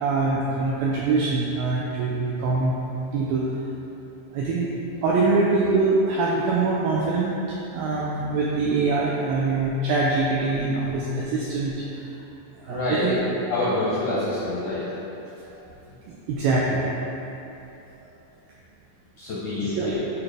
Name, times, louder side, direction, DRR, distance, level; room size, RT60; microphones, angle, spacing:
voice 1, 0.0-2.7 3.1-3.6 4.3-4.7 5.0-12.1 12.6-13.2 15.5-15.6 16.1-17.0 19.6-19.9, right 3 dB, 85° right, -4 dB, 2.0 m, -24 dB
voice 2, 12.6-13.1 13.5-14.8 19.2-20.0, left 2 dB, 80° left, -8 dB, 1.7 m, -26 dB
8.7 x 4.2 x 3.3 m, 2.9 s
omnidirectional pair, 4.8 m